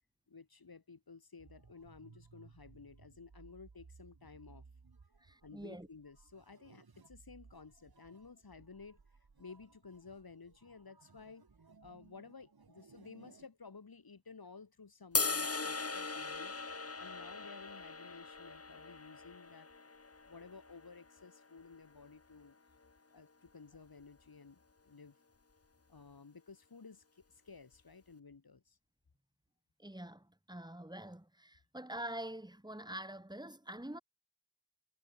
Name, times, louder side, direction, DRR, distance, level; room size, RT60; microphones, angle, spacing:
voice 1, 0.3-4.6 5.4-9.0 9.4-11.5 11.8-16.6 17.0-19.7 20.3-22.6 23.1-25.2 25.9-28.8, left 4 dB, 75° left, 3.4 m, -54 dB
sound 1, 1.4-13.5, right 4 dB, 75° right, 4.4 m, -61 dB
voice 2, 5.2-5.9 29.8-34.0, right 1 dB, 10° right, 3.3 m, -45 dB
sound 2, 15.1-21.4, left 3 dB, 40° left, 1.6 m, -39 dB
wide cardioid pair, 75°, 37 cm